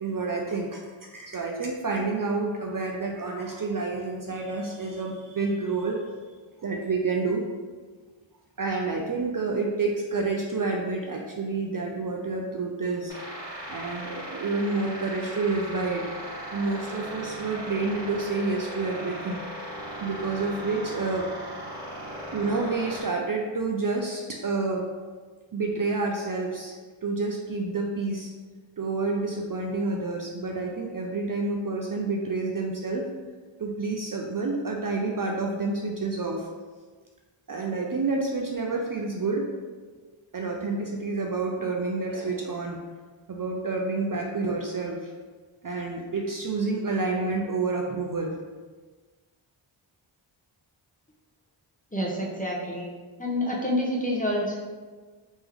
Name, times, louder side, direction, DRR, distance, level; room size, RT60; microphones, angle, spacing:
voice 1, 0.0-6.0 6.6-7.4 8.6-13.1 13.7-16.1 16.5-19.4 20.0-21.3 22.3-24.9 25.5-26.8 27.0-28.3 28.8-33.1 33.6-36.5 37.5-39.5 40.3-42.8 43.3-45.1 45.6-48.4, right 3 dB, 45° right, 0 dB, 0.5 m, -29 dB
sound 1, 13.1-23.0, right 1 dB, 10° right, 1.5 m, -38 dB
voice 2, 51.9-52.9 53.2-54.6, left 1 dB, 15° left, -3 dB, 0.8 m, -27 dB
3.6 x 3.0 x 3.4 m, 1.4 s
wide cardioid pair, 55°, 49 cm